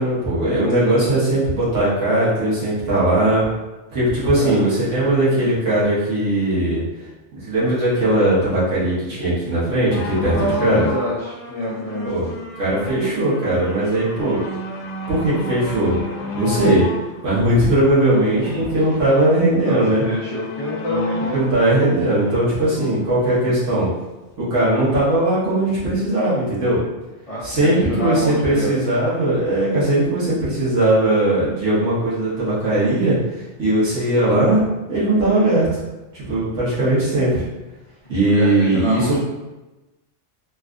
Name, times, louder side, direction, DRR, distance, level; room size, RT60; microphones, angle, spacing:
voice 1, 0.0-3.4 3.9-6.8 7.3-10.9 12.0-12.3 12.6-14.4 15.1-16.0 16.3-16.8 17.2-20.0 21.3-23.9 24.4-26.8 27.4-35.7 36.1-37.4 38.1-39.2, right 1 dB, 70° right, -10 dB, 1.6 m, -19 dB
sound 1, 9.9-23.5 24.2-24.3, left 2 dB, 85° left, 1.0 m, -32 dB
voice 2, 10.3-12.2 18.4-18.6 19.6-21.7 27.3-28.7 38.3-39.2, equal, 45° left, -7 dB, 0.5 m, -27 dB
4.0 x 2.4 x 2.4 m, 1.1 s
omnidirectional pair, 1.3 m